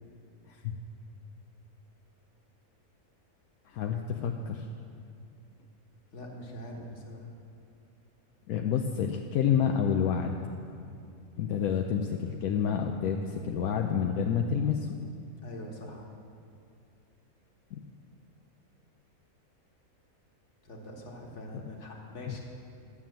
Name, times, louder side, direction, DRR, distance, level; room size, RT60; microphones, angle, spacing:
voice 1, 3.7-4.7 8.5-10.3 11.4-14.9 17.7-17.8 22.3-22.4, left 7 dB, 80° left, 3 dB, 1.1 m, -29 dB
voice 2, 6.1-7.3 15.4-16.1 20.6-22.4, left 1 dB, 50° left, 0 dB, 1.8 m, -43 dB
11.5 x 7.2 x 7.5 m, 2.5 s
omnidirectional pair, 1.6 m